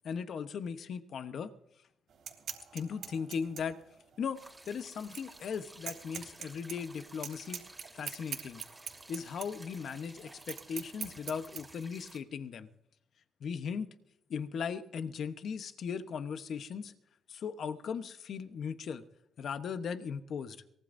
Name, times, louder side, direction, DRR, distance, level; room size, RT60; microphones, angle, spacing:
voice 1, 0.0-1.5 2.7-3.8 4.2-7.6 7.9-8.6 9.1-12.7 13.4-13.9 14.3-16.9 17.3-19.0 19.4-20.6, left 6 dB, 60° left, 9 dB, 1.0 m, -38 dB
sound 1, 2.1-11.6, right 8 dB, 70° right, 3.4 m, -45 dB
sound 2, 4.3-12.2, right 2 dB, 10° right, 2.8 m, -54 dB
23.0 x 19.0 x 2.7 m, 0.79 s
cardioid pair, 90°, 0 cm